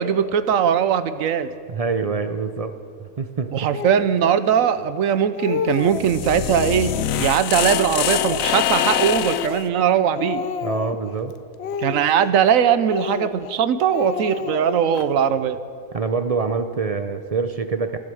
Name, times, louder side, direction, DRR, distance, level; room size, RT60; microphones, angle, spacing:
voice 1, 0.0-1.5 3.5-10.4 11.8-15.6, right 8 dB, 80° right, 13 dB, 1.1 m, -20 dB
voice 2, 1.7-2.7 3.0-3.7 10.6-11.3 15.9-18.0, right 4 dB, 50° right, 9 dB, 0.4 m, -25 dB
Speech, 3.7-4.1 4.8-4.9 5.2-6.1 6.5-7.1 7.6-9.9 10.1-11.1 11.6-12.5 12.9-13.6 13.9-15.1, left 6 dB, 60° left, 0.9 m, -30 dB
sound 1, 5.8-9.6, left 11 dB, 80° left, 1.0 m, -24 dB
13.5 x 11.5 x 7.7 m, 2.2 s
omnidirectional pair, 1.4 m